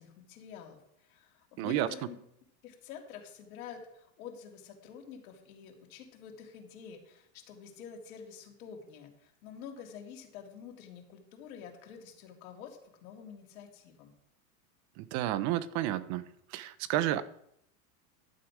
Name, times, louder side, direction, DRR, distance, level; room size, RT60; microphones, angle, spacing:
voice 1, 0.0-2.2 2.6-14.1, left 7 dB, 70° left, 2 dB, 2.8 m, -48 dB
voice 2, 1.6-1.9 15.0-16.3 16.5-17.2, right 13 dB, 40° right, 15 dB, 0.7 m, -31 dB
11.5 x 7.8 x 4.9 m, 0.76 s
supercardioid pair, 135°, 43 cm